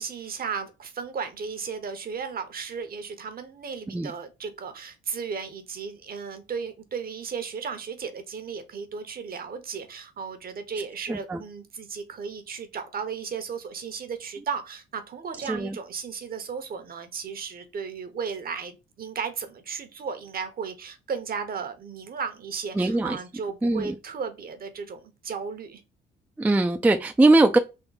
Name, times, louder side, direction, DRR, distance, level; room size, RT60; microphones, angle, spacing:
voice 1, 0.0-25.8, right 6 dB, 50° right, 0.8 m, -35 dB
voice 2, 11.1-11.4 15.5-15.8 22.8-23.2 23.6-23.9 26.4-27.6, right 2 dB, 10° right, 0.3 m, -21 dB
3.6 x 2.1 x 3.9 m
cardioid pair, 90°, 20 cm